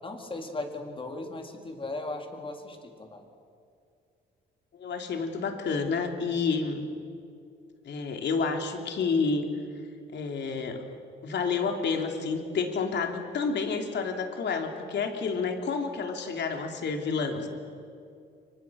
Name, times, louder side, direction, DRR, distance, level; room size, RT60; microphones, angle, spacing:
voice 1, 0.0-3.3, left 2 dB, 25° left, 3 dB, 4.1 m, -37 dB
voice 2, 4.7-6.8 7.9-9.5 10.1-10.9 11.2-17.5, left 5 dB, 60° left, 4 dB, 3.5 m, -29 dB
30.0 x 24.5 x 6.5 m, 2.4 s
cardioid pair, 90°, 20 cm